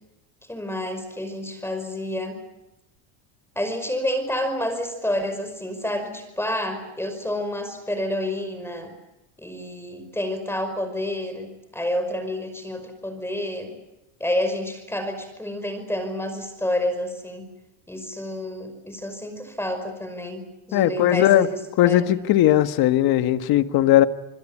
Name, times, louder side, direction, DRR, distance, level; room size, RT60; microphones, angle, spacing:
voice 1, 0.5-2.4 3.6-8.9 9.4-13.7 14.2-17.5 17.9-22.0, left 1 dB, 5° left, 8 dB, 5.4 m, -29 dB
voice 2, 20.7-21.5 21.8-24.1, left 13 dB, 55° left, 10 dB, 1.7 m, -18 dB
27.5 x 21.5 x 8.6 m, 0.92 s
supercardioid pair, 110°, 44 cm